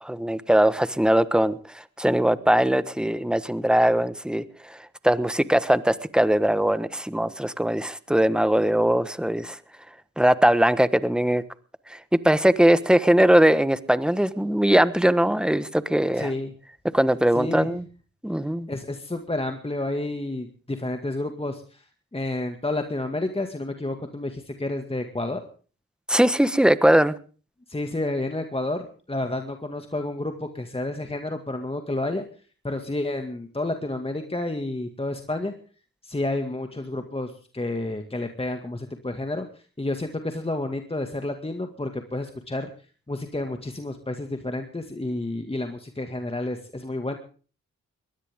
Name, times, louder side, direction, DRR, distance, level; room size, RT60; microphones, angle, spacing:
voice 1, 0.0-1.6 2.0-4.4 4.7-4.8 5.0-9.6 10.2-11.4 11.9-12.0 12.2-16.3 16.9-17.8 18.2-18.7 26.1-27.1, right 1 dB, 5° right, 1.3 m, -20 dB
voice 2, 16.1-16.5 17.4-17.7 18.7-21.9 22.1-25.4 27.7-32.2 32.6-35.5 36.0-42.7 43.1-47.2, left 2 dB, 20° left, 2.1 m, -30 dB
21.5 x 16.5 x 3.7 m
supercardioid pair, 45°, 30 cm